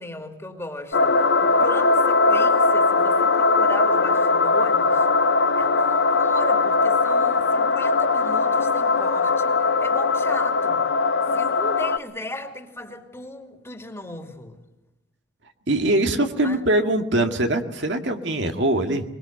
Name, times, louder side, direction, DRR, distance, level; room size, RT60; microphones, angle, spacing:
voice 1, 0.0-5.3 5.6-10.8 11.2-14.6 16.4-16.6, left 1 dB, 15° left, 4 dB, 2.5 m, -37 dB
sound 1, 0.9-12.0, left 3 dB, 65° left, 0.8 m, -20 dB
voice 2, 15.7-19.0, right 1 dB, 70° right, 5 dB, 2.0 m, -22 dB
24.5 x 22.0 x 7.9 m, 0.94 s
head